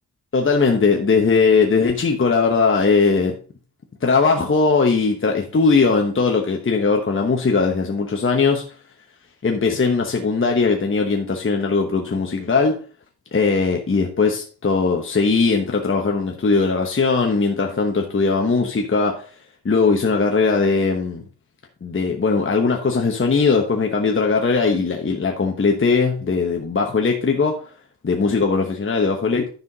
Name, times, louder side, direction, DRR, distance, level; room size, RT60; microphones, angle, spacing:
voice 1, 0.3-3.4 4.0-8.7 9.4-12.8 13.3-19.3 19.6-21.2 21.8-27.7 28.0-29.5, left 4 dB, 30° left, 1.1 m, -19 dB
10.5 x 5.8 x 4.0 m
wide cardioid pair, 120°, 39 cm